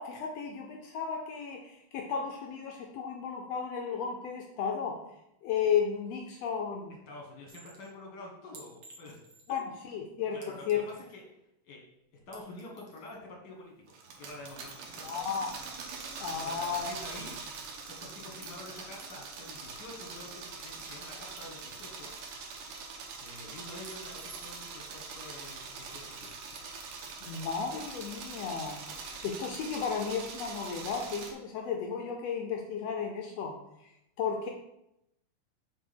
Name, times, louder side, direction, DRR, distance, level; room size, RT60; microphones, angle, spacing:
voice 1, 0.0-5.0 5.4-7.0 9.5-9.6 9.9-10.4 10.7-10.9 15.0-15.6 16.2-16.9 27.2-28.8 29.2-33.9 34.2-34.5, left 6 dB, 80° left, 2 dB, 1.4 m, -34 dB
voice 2, 7.1-9.2 10.3-10.7 11.1-11.2 11.6-11.8 12.3-13.7 14.2-15.2 16.4-17.4 18.0-22.1 23.2-26.4, left 2 dB, 55° left, -1 dB, 1.2 m, -47 dB
Chink clink, 7.5-7.9 8.5-9.6 10.4-11.2 12.2-13.2 14.7-14.8 15.1-15.9 16.6-17.6 18.4-18.6 19.0-19.9 21.4-21.5 21.7-22.6 23.8-24.8 26.2-26.8, right 3 dB, 65° right, 1.3 m, -55 dB
sound 1, 13.9-31.3, right 4 dB, 90° right, 2.5 m, -43 dB
6.5 x 3.9 x 5.1 m, 0.84 s
omnidirectional pair, 3.7 m